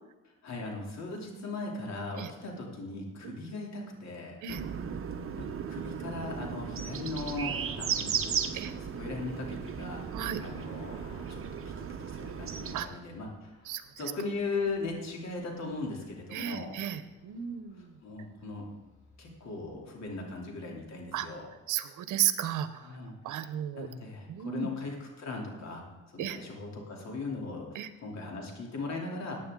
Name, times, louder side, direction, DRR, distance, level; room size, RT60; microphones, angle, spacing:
voice 1, 0.4-4.4 5.4-8.5 9.0-10.0 10.4-10.9 11.3-13.5 14.0-16.7 18.0-18.7 19.2-21.5 22.8-23.5 23.8-25.8 26.1-27.7 28.0-29.4, left 3 dB, 60° left, 0 dB, 3.1 m, -38 dB
sound 1, 4.5-12.8, right 7 dB, 45° right, 0.9 m, -36 dB
sound 2, 7.1-21.6, left 1 dB, 90° left, 3.5 m, -58 dB
voice 2, 13.6-14.1 16.3-17.9 21.1-21.3 21.7-22.9 23.2-23.9 24.3-24.7 26.2-26.4 27.7-27.9, right 10 dB, 80° right, 12 dB, 0.9 m, -34 dB
15.0 x 9.5 x 3.7 m, 1.2 s
cardioid pair, 90°, 30 cm